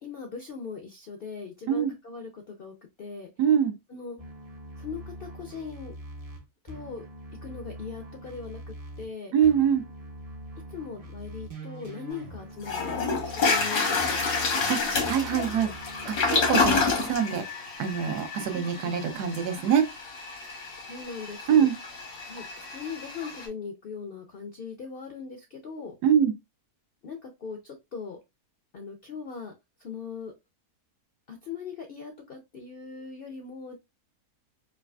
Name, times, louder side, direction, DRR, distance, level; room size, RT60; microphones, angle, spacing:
voice 1, 0.0-3.3 3.9-4.2 4.8-5.9 6.6-7.0 7.4-9.3 10.7-14.3 16.6-17.1 18.5-19.0 20.9-21.7 22.3-25.9 27.0-28.2 28.7-29.5 29.8-30.3 31.3-33.8, left 5 dB, 65° left, 0.5 m, -40 dB
voice 2, 3.4-3.7 9.3-9.8 14.7-14.8 15.1-15.7 16.1-16.8 17.0-17.4 17.8-19.9 21.5-21.7 26.0-26.3, right 8 dB, 85° right, 1.3 m, -24 dB
sound 1, 4.2-9.1 9.4-16.9, right 1 dB, 45° right, 0.4 m, -43 dB
Toilet flush, 12.1-12.2 12.6-23.5, left 4 dB, 85° left, 1.7 m, -29 dB
4.9 x 2.4 x 2.3 m
omnidirectional pair, 1.7 m